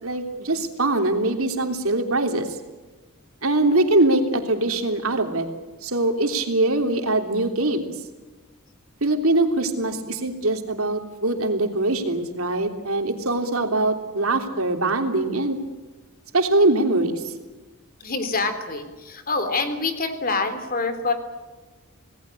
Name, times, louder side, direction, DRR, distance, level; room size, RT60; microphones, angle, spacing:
voice 1, 0.0-2.5 3.4-5.5 5.8-7.8 9.0-15.6 16.3-17.3, right 2 dB, 75° right, 5 dB, 3.3 m, -22 dB
voice 2, 18.0-21.1, left 3 dB, 40° left, 9 dB, 3.5 m, -26 dB
27.0 x 19.0 x 8.5 m, 1.2 s
head